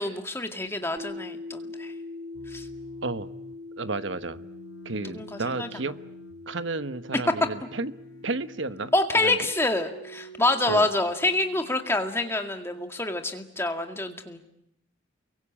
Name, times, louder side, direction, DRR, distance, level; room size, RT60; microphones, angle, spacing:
voice 1, 0.0-1.9 2.5-2.7 5.0-5.7 8.9-14.4, left 2 dB, 15° left, 5 dB, 2.1 m, -27 dB
sound 1, 1.0-9.8, left 3 dB, 35° right, 3.0 m, -42 dB
sound 2, 2.3-3.6 4.3-6.4 7.1-9.0 9.8-11.8, right 2 dB, 85° left, 3.6 m, -49 dB
voice 2, 3.8-4.5 4.8-6.0 6.5-7.9 8.2-8.9 9.2-9.4 10.7-10.9, right 3 dB, 70° right, 12 dB, 1.1 m, -32 dB
29.0 x 23.0 x 8.7 m, 0.77 s
head